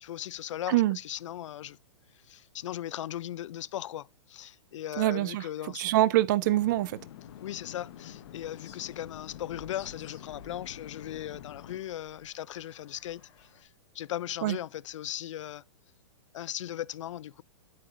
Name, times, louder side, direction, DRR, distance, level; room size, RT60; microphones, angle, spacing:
voice 1, 0.0-1.8 2.3-5.8 7.4-13.3 13.6-13.7 13.9-15.6 16.3-17.4, left 12 dB, 75° left, 0.4 m, -38 dB
voice 2, 5.0-5.5 5.7-7.0 14.4-14.6, right 16 dB, 40° right, 0.5 m, -25 dB
sound 1, 6.4-11.8, left 11 dB, 55° left, 0.8 m, -47 dB
Bird vocalization bird call bird song, 7.2-13.6, left 3 dB, 35° left, 3.7 m, -55 dB
8.9 x 8.5 x 2.5 m
hypercardioid pair, 160°, 16 cm